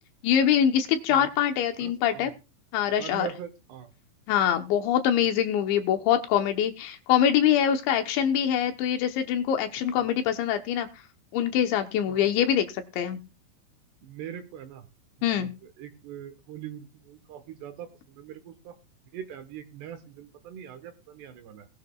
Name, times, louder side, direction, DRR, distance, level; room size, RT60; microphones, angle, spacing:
voice 1, 0.2-2.3 2.7-3.3 4.3-10.9 11.3-12.6 13.0-13.2 15.2-15.5, left 9 dB, 75° left, 6 dB, 3.1 m, -24 dB
voice 2, 1.8-2.3 3.0-3.9 12.1-12.2 14.0-14.8 15.4-15.5 15.8-18.8 19.1-21.7, right 10 dB, 70° right, 8 dB, 2.9 m, -42 dB
19.0 x 10.5 x 2.3 m, 0.29 s
omnidirectional pair, 5.6 m